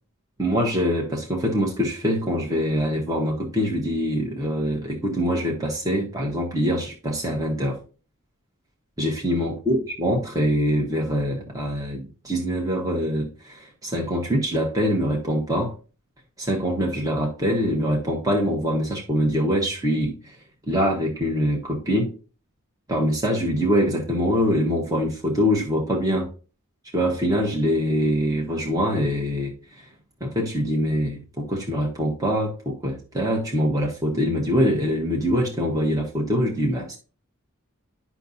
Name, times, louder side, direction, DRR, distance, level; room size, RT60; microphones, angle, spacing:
voice 1, 0.4-7.8 9.0-15.7 16.4-20.3 20.7-22.1 22.9-26.3 26.9-29.9 30.2-37.0, equal, 15° right, -2 dB, 1.2 m, -24 dB
10.0 x 6.0 x 2.7 m, 0.36 s
head